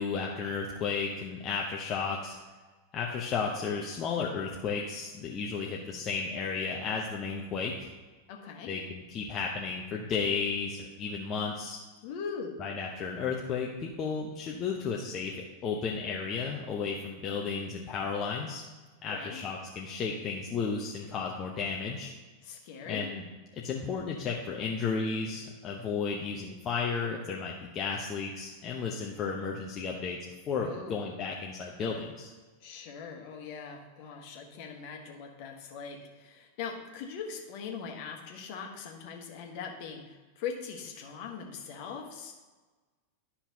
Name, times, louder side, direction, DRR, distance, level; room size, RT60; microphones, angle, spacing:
voice 1, 0.0-2.4 2.9-7.9 8.7-11.8 12.6-18.6 19.0-22.1 22.9-23.2 23.5-30.2 30.5-32.3, left 5 dB, 30° left, -2 dB, 0.9 m, -33 dB
voice 2, 8.3-8.7 12.0-12.5 19.1-19.4 22.4-23.1 30.6-31.1 32.6-42.3, left 6 dB, 45° left, 2 dB, 1.4 m, -41 dB
12.0 x 5.7 x 2.8 m, 1.3 s
figure-of-eight pair, 90°, 0 cm